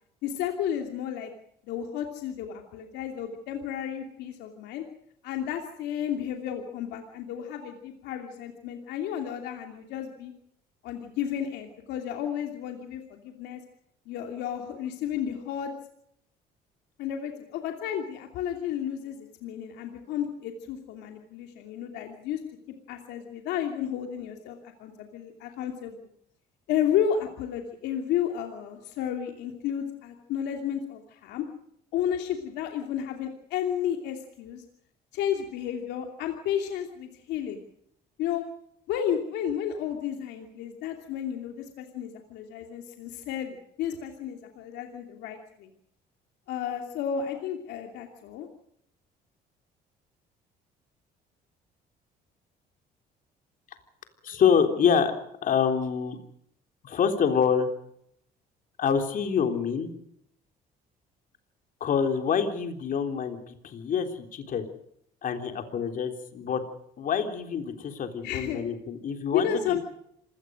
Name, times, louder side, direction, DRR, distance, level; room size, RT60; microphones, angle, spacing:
voice 1, 0.2-1.3 1.6-4.8 5.2-10.3 10.8-13.6 14.1-15.7 17.0-22.4 22.9-26.0 26.7-31.4 31.9-34.6 35.1-37.6 38.2-38.4 38.9-45.7 46.5-48.5 68.2-68.6 69.3-69.8, left 9 dB, 85° left, 4 dB, 2.8 m, -32 dB
voice 2, 54.2-55.1 55.4-56.2 56.8-57.7 58.8-59.9 61.8-64.7 65.2-66.6 67.0-69.8, left 7 dB, 55° left, 6 dB, 3.6 m, -26 dB
26.5 x 18.0 x 6.5 m, 0.73 s
cardioid pair, 110°, 17 cm